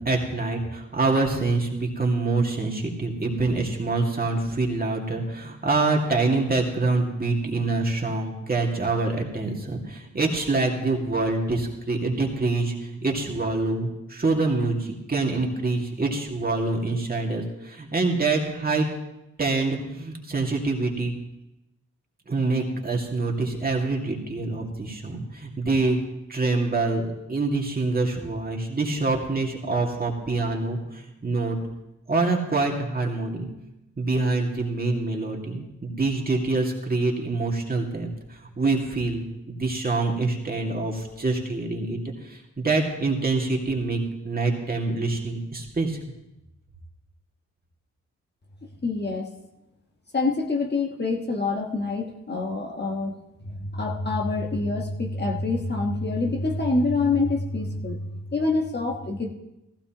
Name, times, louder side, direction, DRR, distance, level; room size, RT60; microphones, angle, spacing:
voice 1, 0.0-18.9 19.4-21.1 22.3-26.0 26.3-31.6 32.1-33.5 34.0-42.0 42.2-44.0 44.2-46.0, right 3 dB, 30° right, 0 dB, 2.2 m, -25 dB
voice 2, 48.8-49.3 50.1-59.3, left 3 dB, 35° left, 0 dB, 1.4 m, -26 dB
15.0 x 15.0 x 3.0 m, 0.92 s
cardioid pair, 70°, 31 cm